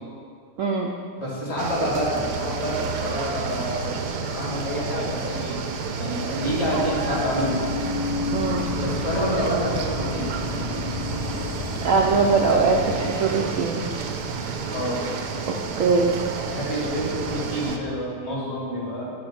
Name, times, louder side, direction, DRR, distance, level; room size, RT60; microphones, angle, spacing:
voice 1, 0.6-0.9 8.3-8.6 11.8-13.8 15.5-16.1, right 4 dB, 65° right, 0 dB, 0.9 m, -21 dB
voice 2, 1.2-7.6 8.8-10.3 14.7-15.0 16.5-19.1, equal, 40° left, -5 dB, 2.5 m, -28 dB
sound 1, 1.6-17.8, right 5 dB, 80° right, 1.3 m, -30 dB
sound 2, 6.4-13.1, left 4 dB, 70° left, 0.5 m, -32 dB
7.8 x 7.1 x 5.6 m, 2.3 s
omnidirectional pair, 1.8 m